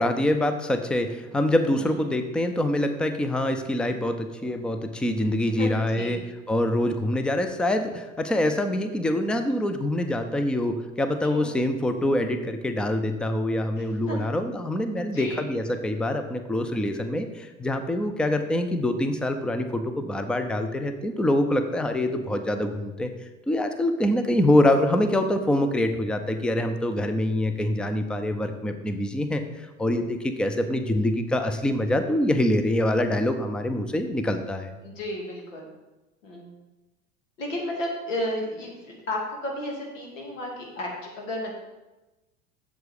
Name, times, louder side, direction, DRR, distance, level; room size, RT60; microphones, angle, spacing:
voice 1, 0.0-6.2 6.5-23.1 23.5-29.4 29.8-34.7, left 1 dB, ahead, 7 dB, 0.5 m, -25 dB
voice 2, 1.7-2.0 5.4-6.2 11.3-11.6 13.8-14.3 15.0-15.4 34.8-35.7 36.2-36.5 37.4-41.5, left 1 dB, 70° left, -1 dB, 2.6 m, -33 dB
7.8 x 7.0 x 5.0 m, 1.1 s
figure-of-eight pair, 80°, 40 cm